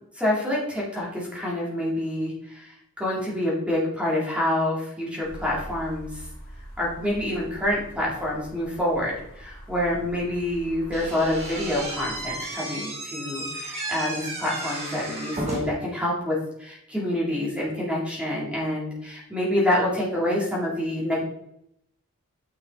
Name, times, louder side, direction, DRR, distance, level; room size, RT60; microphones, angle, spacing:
voice 1, 0.1-6.3 6.8-21.2, left 1 dB, 5° right, -5 dB, 3.4 m, -27 dB
sound 1, 5.2-12.4, equal, 40° left, 2.7 m, -43 dB
Slam / Squeak, 10.9-15.9, right 1 dB, 30° right, 2.5 m, -33 dB
9.7 x 6.4 x 4.2 m, 0.74 s
head